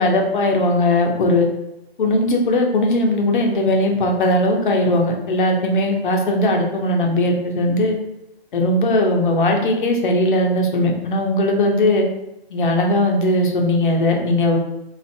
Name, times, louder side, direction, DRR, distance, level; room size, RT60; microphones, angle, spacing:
voice 1, 0.0-1.5 2.0-8.0 8.5-12.1 12.5-14.6, left 1 dB, 50° left, 2 dB, 0.7 m, -18 dB
3.3 x 2.5 x 2.7 m, 0.89 s
hypercardioid pair, 160°, 32 cm